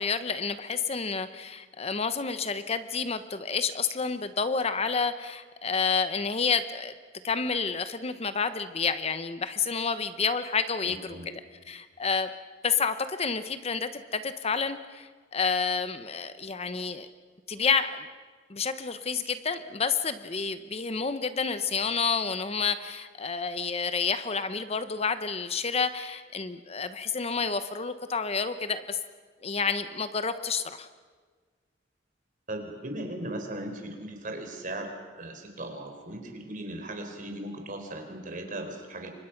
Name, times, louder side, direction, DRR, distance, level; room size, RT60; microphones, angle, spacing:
voice 1, 0.0-6.9 7.2-11.2 11.7-12.3 12.6-17.1 17.5-18.1 18.5-29.0 29.4-30.9, left 5 dB, 35° left, 11 dB, 0.8 m, -29 dB
voice 2, 10.8-11.3 32.5-39.1, right 1 dB, 45° right, 5 dB, 3.9 m, -38 dB
29.5 x 24.5 x 5.9 m, 1.5 s
head